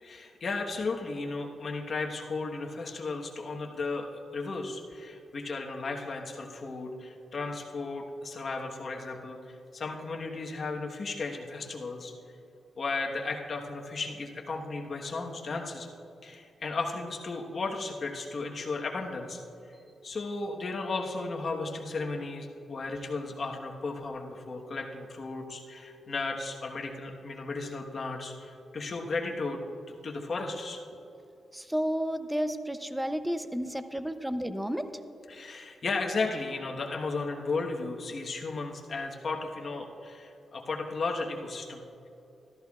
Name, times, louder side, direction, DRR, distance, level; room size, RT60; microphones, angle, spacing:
voice 1, 0.0-12.1 12.8-15.9 16.2-19.4 20.0-30.8 35.3-42.1, left 3 dB, 50° left, 1 dB, 1.2 m, -35 dB
voice 2, 31.5-35.2, equal, 5° right, 10 dB, 0.5 m, -32 dB
13.5 x 13.5 x 2.4 m, 2.8 s
cardioid pair, 100°, 0 cm